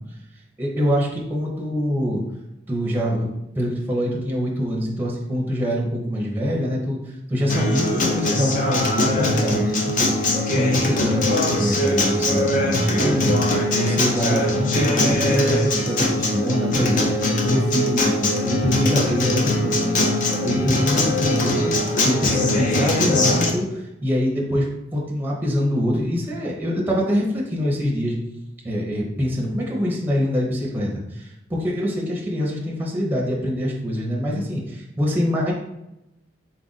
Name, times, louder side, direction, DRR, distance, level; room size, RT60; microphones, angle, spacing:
voice 1, 0.6-2.2 2.7-3.3 3.5-21.7 22.0-28.1 28.6-35.5, equal, 10° right, -2 dB, 0.7 m, -24 dB
Acoustic guitar, 7.5-23.5, left 1 dB, 40° left, 0.6 m, -21 dB
4.2 x 2.5 x 3.9 m, 0.88 s
head